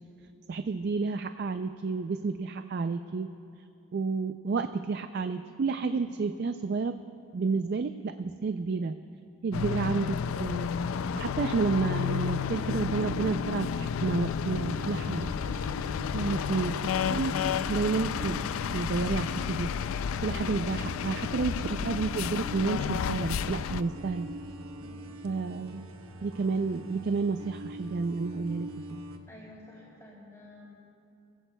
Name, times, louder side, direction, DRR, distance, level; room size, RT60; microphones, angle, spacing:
voice 1, 0.5-3.3 3.9-7.0 7.3-9.0 9.4-10.7 11.1-15.3 16.1-17.3 17.7-18.4 18.7-19.7 20.2-24.3 25.2-25.9 26.2-28.7, right 4 dB, 50° right, 9 dB, 0.3 m, -30 dB
sound 1, 9.5-23.8, left 7 dB, 75° left, 0.3 m, -31 dB
sound 2, 14.6-29.2, right 1 dB, 85° right, 1.1 m, -44 dB
voice 2, 29.3-30.7, left 1 dB, 15° left, -9 dB, 4.0 m, -51 dB
25.5 x 16.0 x 2.2 m, 2.7 s
head